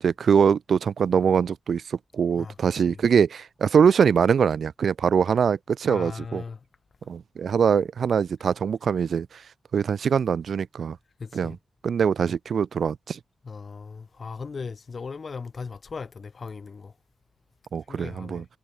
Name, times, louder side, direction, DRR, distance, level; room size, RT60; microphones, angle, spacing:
voice 1, 0.0-6.4 7.1-9.3 9.7-11.0 11.3-11.6 11.8-13.2 17.7-18.4, right 7 dB, 60° right, 0.4 m, -23 dB
voice 2, 5.9-6.6 11.2-11.6 13.5-16.9 17.9-18.4, left 5 dB, 40° left, 0.9 m, -37 dB
wide cardioid pair, 160°, 0 cm